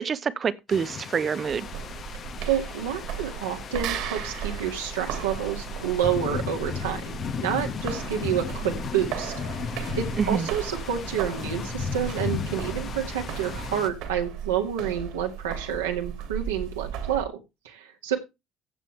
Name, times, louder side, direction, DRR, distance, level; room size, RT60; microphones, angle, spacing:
voice 1, 0.0-1.7 10.2-10.5, right 6 dB, 40° right, 1.0 m, -26 dB
sound 1, 0.7-13.9, left 6 dB, 50° left, 1.3 m, -35 dB
sound 2, 1.5-17.3, right 9 dB, 65° right, 2.6 m, -36 dB
voice 2, 2.5-9.3 10.0-17.3 17.6-18.2, right 9 dB, 85° right, 2.1 m, -29 dB
15.5 x 7.3 x 3.3 m
hypercardioid pair, 60°, 0 cm